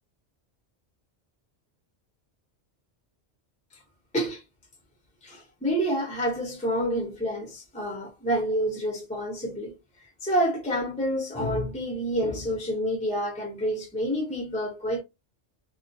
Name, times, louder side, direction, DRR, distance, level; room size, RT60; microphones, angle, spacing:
voice 1, 5.2-9.8 10.2-15.0, equal, 5° left, 0.7 m, -28 dB
2.4 x 2.2 x 2.6 m
omnidirectional pair, 1.2 m